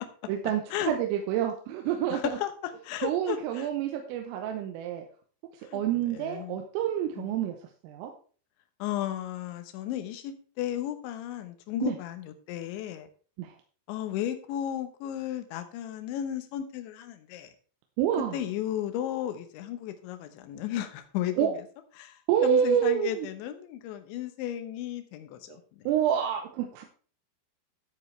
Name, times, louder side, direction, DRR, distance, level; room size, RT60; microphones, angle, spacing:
voice 1, 0.3-0.6 0.9-2.2 3.0-5.1 5.7-7.6 7.8-8.1 11.8-12.0 13.4-13.5 18.0-18.4 21.4-21.5 22.3-23.3 25.9-26.8, right 9 dB, 85° right, 3 dB, 3.6 m, -27 dB
voice 2, 2.1-3.7 5.6-6.6 7.2-7.3 8.8-13.1 13.9-17.5 18.3-21.6 22.0-25.9, left 11 dB, 75° left, 8 dB, 3.2 m, -34 dB
12.5 x 8.4 x 3.3 m, 0.41 s
omnidirectional pair, 5.8 m